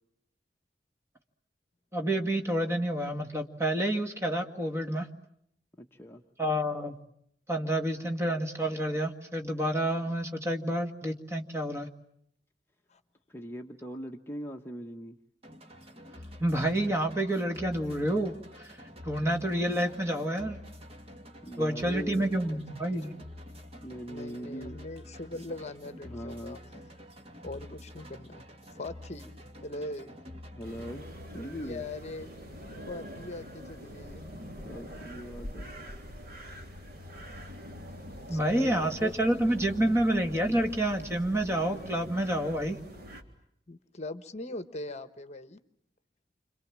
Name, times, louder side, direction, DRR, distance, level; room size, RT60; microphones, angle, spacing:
voice 1, 1.9-5.1 6.4-7.0 7.5-11.9 16.4-18.8 19.0-20.6 21.6-23.1 38.3-42.8, right 1 dB, 15° right, 4 dB, 2.0 m, -29 dB
voice 2, 5.8-6.2 13.3-15.2 21.5-22.2 23.2-23.3 23.7-24.8 26.0-26.6 30.6-31.1 31.3-31.9 34.6-35.7, equal, 15° left, 2 dB, 1.1 m, -41 dB
sound 1, 15.4-31.0, left 1 dB, 35° right, 2.3 m, -48 dB
voice 3, 22.0-22.6 22.9-23.2 24.1-26.9 27.4-28.4 28.7-29.3 29.6-30.1 31.4-32.4 32.9-34.2 38.3-39.2 43.7-45.6, left 2 dB, 40° left, 11 dB, 1.1 m, -41 dB
sound 2, 30.6-43.2, equal, 60° right, 3.5 m, -44 dB
29.5 x 26.5 x 7.5 m, 0.72 s
head